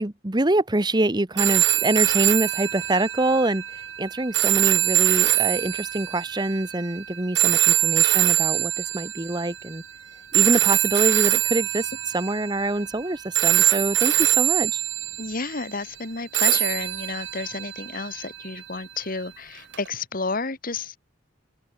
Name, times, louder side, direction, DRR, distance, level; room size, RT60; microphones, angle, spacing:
voice 1, 0.0-9.8 10.3-14.8, right 2 dB, 20° right, 1.1 m, -25 dB
sound 1, 1.4-9.6 10.3-13.0 13.4-15.5 16.3-18.6 19.7-19.9, right 13 dB, 65° right, 2.4 m, -23 dB
voice 2, 15.2-21.0, left 4 dB, 45° left, 1.8 m, -31 dB
head